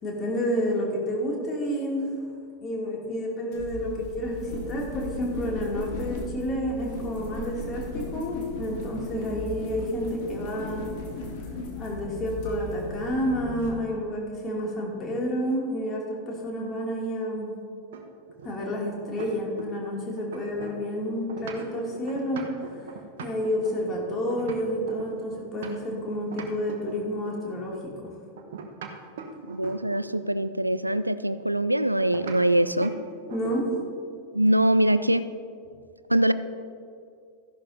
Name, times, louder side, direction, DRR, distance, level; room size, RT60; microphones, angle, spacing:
voice 1, 0.0-2.1 2.6-10.9 11.8-17.6 18.4-22.9 23.2-28.2 33.3-33.8, equal, 25° left, -2 dB, 2.5 m, -30 dB
sound 1, 3.5-13.7, left 2 dB, 50° left, 1.9 m, -37 dB
sound 2, 17.9-19.9 20.2-26.0 26.3-27.5 28.4-30.2 32.1-32.4 32.8-33.0 33.3-34.0, right 5 dB, 60° right, 1.0 m, -40 dB
voice 2, 29.5-32.9 34.3-35.2 36.1-36.3, right 1 dB, 85° right, 14 dB, 0.3 m, -23 dB
14.0 x 11.0 x 2.7 m, 2.3 s
figure-of-eight pair, 90°, 0 cm